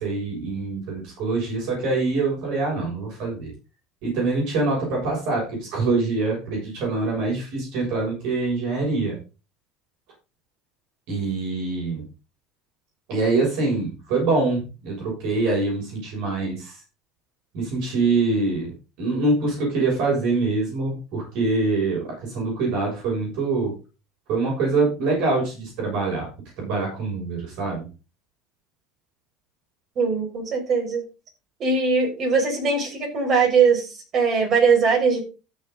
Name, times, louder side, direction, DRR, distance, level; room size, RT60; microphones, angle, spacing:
voice 1, 0.0-3.5 4.0-9.2 11.1-12.0 13.1-16.8 17.5-18.7 19.0-23.7 24.3-26.3 26.6-27.9, right 3 dB, 65° right, -2 dB, 7.0 m, -24 dB
voice 2, 30.0-31.0 31.6-35.2, right 5 dB, 45° right, 1 dB, 6.0 m, -21 dB
13.5 x 6.8 x 4.0 m, 0.32 s
supercardioid pair, 105°, 0 cm